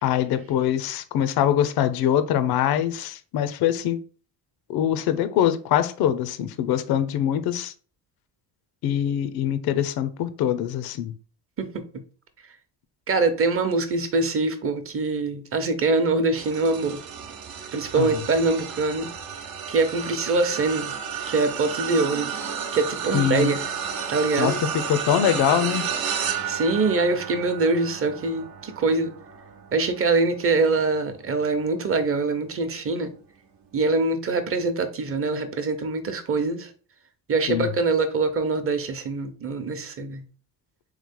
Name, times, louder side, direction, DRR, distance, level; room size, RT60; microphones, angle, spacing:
voice 1, 0.0-4.0 4.7-7.7 8.8-11.1 18.0-18.2 23.1-23.5 24.4-24.6 24.9-25.9 37.5-37.7, left 10 dB, 70° left, 0.6 m, -23 dB
voice 2, 13.1-17.0 17.7-19.1 19.7-20.9 21.3-22.3 22.7-23.6 24.1-24.6 26.5-29.1 29.7-33.1 33.7-36.7 37.3-40.2, right 3 dB, 35° right, 0.8 m, -24 dB
sound 1, 16.3-31.9 32.4-32.6 33.9-34.0, right 7 dB, 60° right, 0.9 m, -32 dB
3.7 x 3.2 x 3.6 m
cardioid pair, 90°, 39 cm